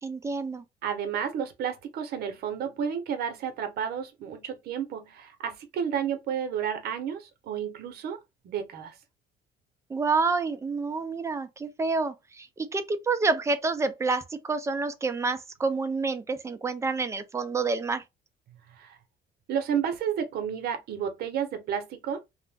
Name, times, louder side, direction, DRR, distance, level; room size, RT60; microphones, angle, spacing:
voice 1, 0.0-0.6 9.9-18.0, right 4 dB, 15° right, 0.4 m, -28 dB
voice 2, 0.8-9.0 18.7-19.0 19.5-22.2, right 8 dB, 65° right, 0.8 m, -31 dB
2.5 x 2.1 x 3.3 m
cardioid pair, 110°, 17 cm